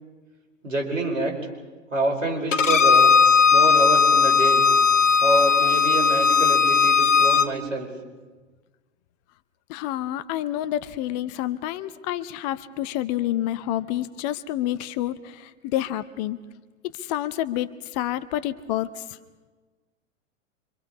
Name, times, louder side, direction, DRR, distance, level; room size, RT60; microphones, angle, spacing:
voice 1, 0.6-1.4 1.9-3.1 3.5-4.6 5.2-7.9, right 2 dB, 75° right, 0 dB, 5.1 m, -26 dB
Bowed string instrument, 2.5-7.5, left 5 dB, 70° left, 1.1 m, -17 dB
voice 2, 9.7-16.4 16.8-19.0, left 13 dB, 30° left, 14 dB, 0.7 m, -28 dB
26.5 x 25.0 x 4.9 m, 1.3 s
figure-of-eight pair, 100°, 39 cm